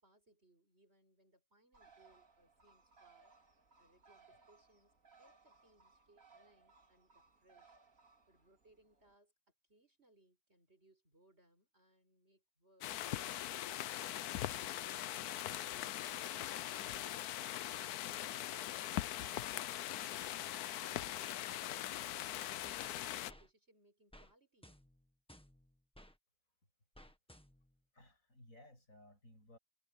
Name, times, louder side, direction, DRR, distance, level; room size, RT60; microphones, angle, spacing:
voice 1, 0.0-3.3 3.8-7.8 8.3-9.3 9.7-17.3 17.7-20.7 21.0-24.8, right 2 dB, 45° right, 6.4 m, -70 dB
Bird, 1.7-9.1, right 4 dB, 60° right, 3.9 m, -66 dB
sound 1, 12.8-23.3, left 13 dB, 90° left, 1.2 m, -41 dB
sound 2, 22.6-23.5 24.1-24.3 24.6-26.2 27.0-27.8, equal, 5° left, 1.4 m, -60 dB
voice 2, 27.9-29.6, left 1 dB, 60° left, 8.3 m, -60 dB
omnidirectional pair, 1.6 m